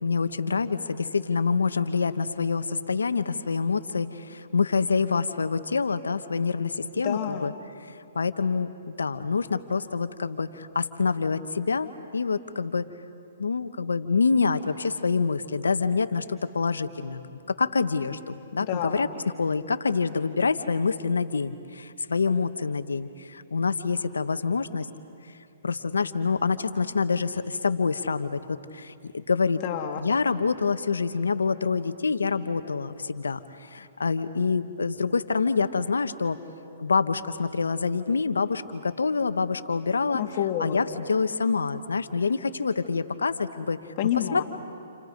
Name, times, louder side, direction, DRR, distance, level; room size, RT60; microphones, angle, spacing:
voice 1, 0.0-7.5 8.1-12.9 13.4-19.1 19.4-24.9 25.6-29.6 30.0-36.4 36.8-40.2 40.6-43.8 44.3-44.4, left 4 dB, 90° left, 11 dB, 1.2 m, -26 dB
voice 2, 7.0-7.5 18.7-19.0 29.6-30.0 40.1-40.8 44.0-44.4, left 11 dB, 40° left, 3 dB, 2.7 m, -28 dB
30.0 x 29.0 x 5.3 m, 2.5 s
hypercardioid pair, 135°, 0 cm